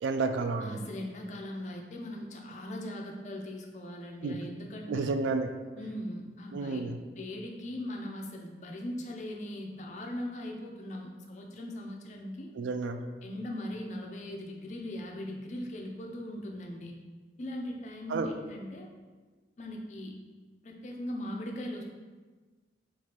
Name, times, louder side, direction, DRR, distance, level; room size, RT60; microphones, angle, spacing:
voice 1, 0.0-0.8 4.2-4.4 4.9-5.5 6.5-7.0 12.6-13.0 18.1-18.3, right 3 dB, 85° right, 7 dB, 0.3 m, -31 dB
voice 2, 0.6-5.1 5.8-6.8 7.1-12.5 13.2-16.9 17.4-18.9 19.6-20.1 20.6-21.8, left 1 dB, 40° left, 1 dB, 0.4 m, -39 dB
4.5 x 2.4 x 2.9 m, 1.3 s
head